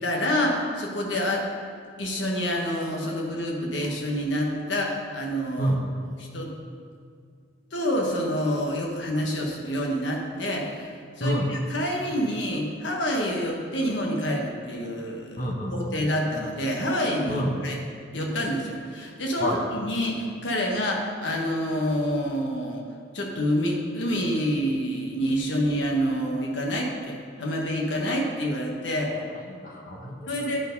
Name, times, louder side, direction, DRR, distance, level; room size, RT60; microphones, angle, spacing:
voice 1, 0.0-1.5 2.0-5.7 6.3-6.5 7.7-10.9 11.2-17.8 18.1-22.8 23.1-29.1 30.3-30.6, equal, 70° left, 0 dB, 1.3 m, -27 dB
voice 2, 15.4-15.9 17.3-17.5 19.4-19.6 29.1-30.6, equal, 45° left, 0 dB, 1.2 m, -28 dB
10.5 x 4.7 x 5.3 m, 2.1 s
head